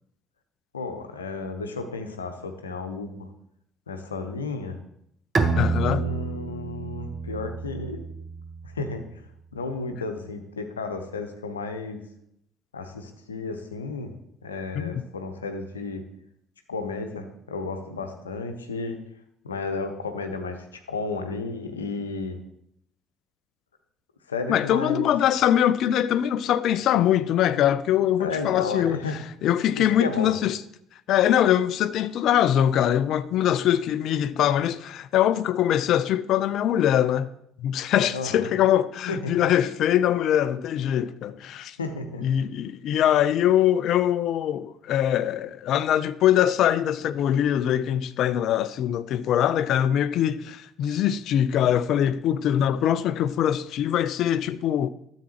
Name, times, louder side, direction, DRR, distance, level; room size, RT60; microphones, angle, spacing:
voice 1, 0.7-3.3 3.9-4.8 5.8-8.1 8.6-9.0 9.5-12.0 12.7-14.1 14.4-16.0 16.7-19.0 19.4-22.4 24.3-25.1 28.2-29.2 29.7-30.3 38.1-38.5 39.1-39.6 41.8-42.5, left 3 dB, 80° left, 0.8 m, -33 dB
Bowed string instrument, 5.3-8.8, right 4 dB, 30° right, 0.8 m, -28 dB
voice 2, 5.6-6.0 14.7-15.0 24.5-29.0 29.4-30.6 31.1-37.3 37.6-41.8 42.2-54.9, left 10 dB, 50° left, 0.4 m, -23 dB
12.5 x 7.4 x 3.0 m
figure-of-eight pair, 55°, 0 cm